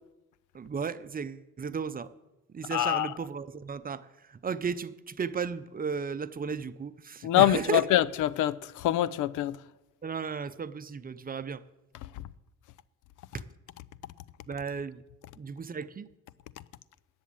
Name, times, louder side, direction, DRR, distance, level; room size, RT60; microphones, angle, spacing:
voice 1, 0.5-2.1 2.5-7.8 10.0-11.6 13.3-13.4 14.5-15.0 15.4-16.1, right 6 dB, 30° right, 0.6 m, -34 dB
voice 2, 2.7-3.1 7.2-9.6, left 13 dB, 85° left, 0.5 m, -25 dB
10.5 x 7.3 x 8.8 m
cardioid pair, 90°, 30 cm